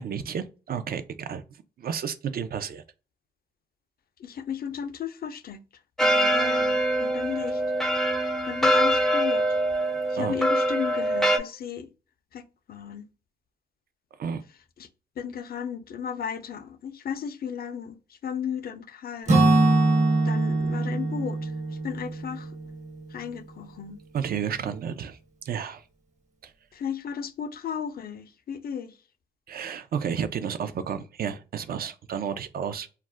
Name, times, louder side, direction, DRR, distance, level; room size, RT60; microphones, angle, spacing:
voice 1, 0.0-1.4 1.8-2.8 10.2-10.4 14.2-14.4 24.1-25.2 25.4-25.8 26.4-26.5 29.5-32.9, right 7 dB, 60° right, 0.4 m, -31 dB
voice 2, 4.2-5.6 6.0-7.6 8.4-9.4 10.1-11.9 12.3-12.4 12.7-13.1 14.8-14.9 15.2-19.4 20.2-21.5 21.8-22.5 23.1-24.0 26.7-28.9, left 8 dB, 60° left, 0.5 m, -34 dB
sound 1, 6.0-11.4, right 1 dB, ahead, 0.4 m, -24 dB
Acoustic guitar / Strum, 19.3-23.2, right 2 dB, 40° right, 0.8 m, -23 dB
2.3 x 2.1 x 3.3 m
cardioid pair, 55°, 18 cm